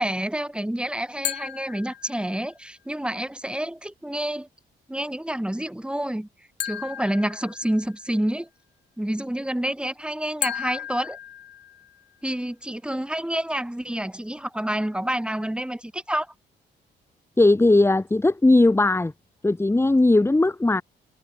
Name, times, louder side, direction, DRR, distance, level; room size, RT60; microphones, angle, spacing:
voice 1, 0.0-4.5 4.9-6.3 6.6-8.5 9.0-11.2 12.2-16.3, right 1 dB, 5° right, 5.2 m, -28 dB
sound 1, 1.2-2.5 6.6-8.1 10.4-12.1, left 10 dB, 70° left, 4.3 m, -34 dB
voice 2, 17.4-19.1 19.4-20.8, left 2 dB, 15° left, 1.7 m, -18 dB
cardioid pair, 90°, 19 cm